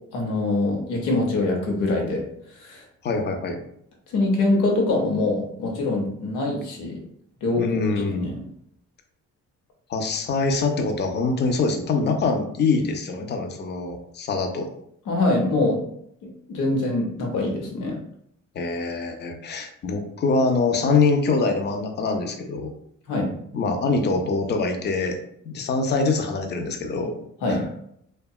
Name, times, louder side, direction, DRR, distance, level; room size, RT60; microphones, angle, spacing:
voice 1, 0.1-2.2 2.6-2.8 4.1-7.0 7.4-7.6 8.2-8.4 15.1-15.8 16.2-18.0 23.1-23.3 27.4-27.6, left 2 dB, 90° left, 0 dB, 0.8 m, -24 dB
voice 2, 3.0-3.6 7.6-8.3 9.9-14.7 18.5-22.7 23.5-25.2 25.5-27.1 27.5-27.6, left 4 dB, 35° left, 5 dB, 0.4 m, -24 dB
2.7 x 2.2 x 2.3 m, 0.70 s
cardioid pair, 90°, 30 cm